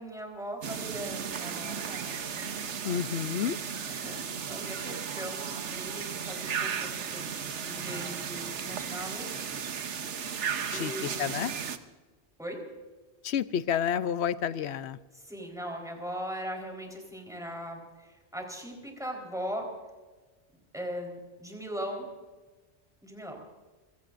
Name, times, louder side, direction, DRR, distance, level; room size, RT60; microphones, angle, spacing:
voice 1, 0.0-3.0 3.9-4.2 4.5-9.4 10.7-11.1 12.4-12.7 15.2-19.7 20.7-22.1 23.0-23.4, equal, 5° right, 1 dB, 4.1 m, -39 dB
sound 1, 0.6-11.8, right 7 dB, 85° right, 1.2 m, -35 dB
voice 2, 2.8-3.6 10.7-11.5 13.2-15.0, left 8 dB, 75° left, 14 dB, 0.9 m, -30 dB
28.0 x 17.0 x 2.6 m, 1.3 s
omnidirectional pair, 1.2 m